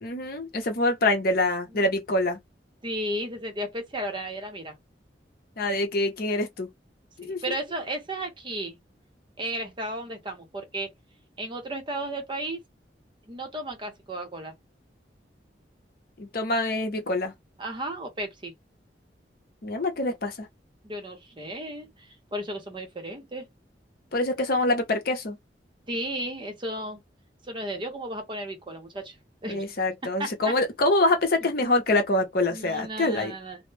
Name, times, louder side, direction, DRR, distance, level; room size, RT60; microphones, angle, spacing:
voice 1, 0.0-2.4 5.6-6.7 7.2-7.5 16.2-17.3 19.6-20.5 24.1-25.4 29.5-33.3, left 2 dB, 55° left, 0.7 m, -25 dB
voice 2, 2.8-4.7 7.2-8.8 9.4-10.9 11.4-12.6 13.3-14.5 17.6-18.5 20.8-23.5 25.9-27.0 27.5-29.2 29.4-29.6 30.2-30.5 32.5-33.6, right 1 dB, 30° right, 0.7 m, -34 dB
2.1 x 2.0 x 3.1 m
head